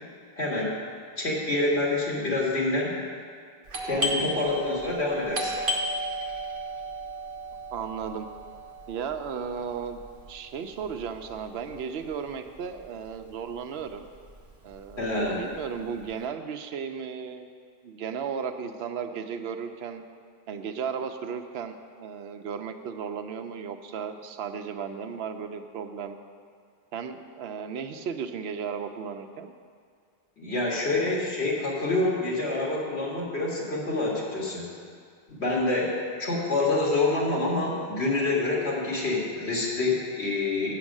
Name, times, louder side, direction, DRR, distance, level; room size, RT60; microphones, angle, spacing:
voice 1, 0.4-0.7 1.2-2.9 3.8-5.5 15.0-15.4 30.4-34.7 35.3-35.9 36.2-40.8, left 2 dB, 85° left, -4 dB, 2.2 m, -27 dB
Doorbell, 3.7-13.1 13.3-13.4 14.1-14.4 14.7-16.1, equal, 60° right, 1.0 m, -34 dB
voice 2, 4.0-4.4 7.7-8.3 8.9-10.0 10.3-14.1 14.6-17.5 17.8-20.0 20.5-26.2 26.9-29.5, right 6 dB, 80° right, 7 dB, 0.9 m, -35 dB
7.6 x 6.3 x 7.2 m, 2.1 s
omnidirectional pair, 1.1 m